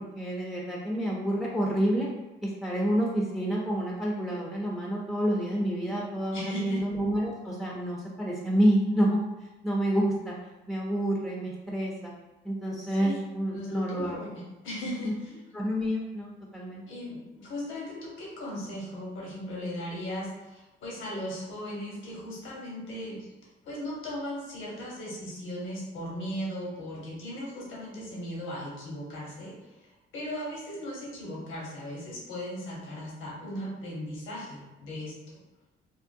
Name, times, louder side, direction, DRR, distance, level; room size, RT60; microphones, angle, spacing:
voice 1, 0.0-2.1 2.4-9.2 9.6-10.3 10.7-12.1 12.4-14.2 15.0-15.1 15.5-16.8, equal, ahead, -3 dB, 0.5 m, -28 dB
voice 2, 6.3-6.8 12.8-13.2 13.5-15.4 16.9-23.3 23.6-35.2, equal, 80° left, -4 dB, 1.0 m, -37 dB
3.6 x 2.1 x 2.5 m, 1.0 s
cardioid pair, 90°, 20 cm